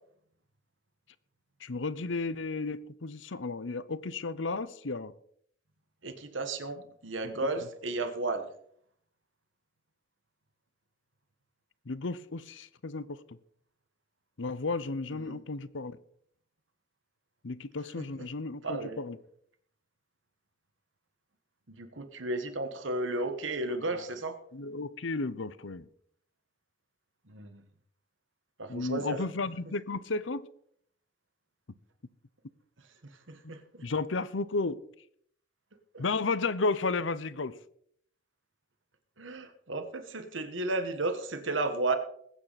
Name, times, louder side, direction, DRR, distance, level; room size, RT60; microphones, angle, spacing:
voice 1, 1.6-5.1 11.9-13.2 14.4-16.0 17.4-19.2 24.5-25.9 28.7-30.5 33.8-34.8 36.0-37.6, left 3 dB, 70° left, 0.8 m, -33 dB
voice 2, 6.0-8.5 15.1-15.4 18.0-18.3 18.6-19.0 21.7-24.4 27.3-27.6 28.6-29.2 33.3-33.9 35.9-36.0 39.2-42.0, right 2 dB, 75° right, 1.5 m, -34 dB
20.5 x 9.3 x 4.2 m
head